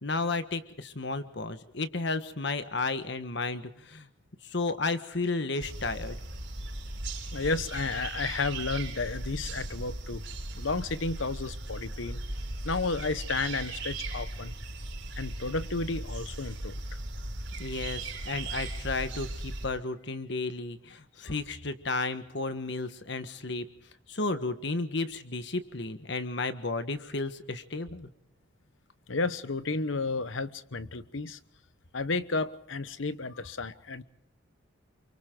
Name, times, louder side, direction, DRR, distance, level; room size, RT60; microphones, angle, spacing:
voice 1, 0.0-4.1 4.4-6.2 17.6-23.6 24.1-28.1, left 3 dB, 60° left, 1.4 m, -33 dB
sound 1, 5.6-19.7, right 2 dB, 65° right, 5.4 m, -38 dB
voice 2, 7.3-10.2 10.5-12.2 12.6-14.5 15.2-16.8 29.1-31.4 31.9-34.0, left 3 dB, 75° left, 1.1 m, -32 dB
28.5 x 24.0 x 3.9 m
head